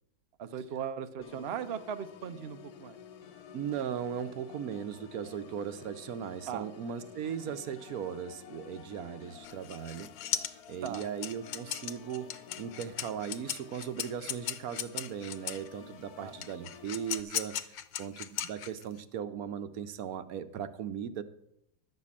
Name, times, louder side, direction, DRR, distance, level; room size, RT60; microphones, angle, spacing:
voice 1, 0.4-3.0 6.5-6.7 7.5-7.6 10.8-11.1 16.2-16.3, right 8 dB, 80° right, 10 dB, 0.5 m, -38 dB
Organ, 1.2-17.2, left 8 dB, 60° left, 1.1 m, -51 dB
voice 2, 3.5-21.2, right 8 dB, 65° right, 11 dB, 1.0 m, -38 dB
sound 1, 9.4-15.7 16.4-19.0, left 10 dB, 85° left, 1.5 m, -37 dB
11.5 x 6.7 x 8.5 m, 0.76 s
omnidirectional pair, 2.0 m